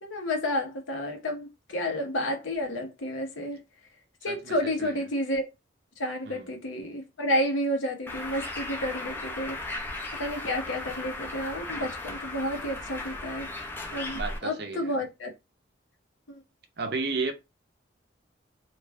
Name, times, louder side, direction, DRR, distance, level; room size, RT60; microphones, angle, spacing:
voice 1, 0.0-3.6 4.2-5.5 6.0-9.7 10.2-13.5 13.9-15.3 16.3-16.4, left 1 dB, 90° left, 0.8 m, -31 dB
voice 2, 4.3-4.9 6.3-6.5 14.1-14.9 16.8-17.3, right 3 dB, 55° right, 0.5 m, -33 dB
Bird, 8.1-14.4, left 2 dB, 10° left, 0.4 m, -36 dB
2.4 x 2.2 x 3.3 m
head